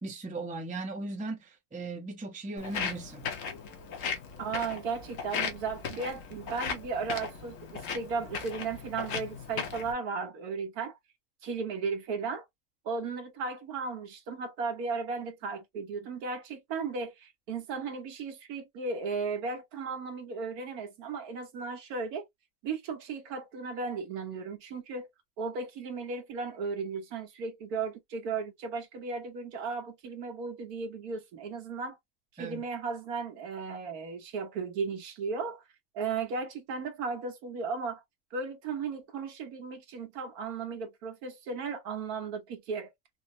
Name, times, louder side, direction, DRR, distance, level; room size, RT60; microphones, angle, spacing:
voice 1, 0.0-3.2 32.4-32.6, right 2 dB, 10° right, 0.5 m, -38 dB
Walk footsteps, 2.6-9.9, left 6 dB, 65° left, 1.2 m, -37 dB
voice 2, 4.4-11.0 11.4-12.4 12.8-22.2 22.6-25.1 25.4-32.0 32.4-35.6 35.9-38.0 38.3-42.9, right 4 dB, 85° right, 1.5 m, -35 dB
4.1 x 2.0 x 2.6 m
omnidirectional pair, 1.5 m